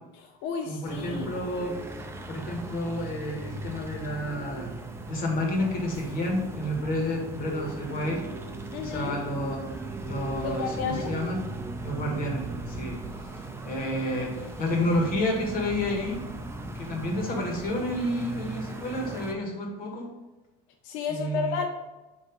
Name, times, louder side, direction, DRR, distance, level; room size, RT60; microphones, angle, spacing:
voice 1, 0.1-1.3 8.7-9.2 10.4-11.1 20.8-21.7, left 6 dB, 65° left, 3 dB, 0.7 m, -32 dB
voice 2, 0.7-1.8 2.3-4.7 5.1-8.2 8.8-9.7 10.0-11.4 11.8-13.0 13.6-16.2 16.8-20.1 21.1-21.6, left 1 dB, 45° left, 0 dB, 1.9 m, -30 dB
sound 1, 0.8-19.3, right 2 dB, 10° right, 0.7 m, -38 dB
7.6 x 3.2 x 5.3 m, 1.1 s
cardioid pair, 140°, 20 cm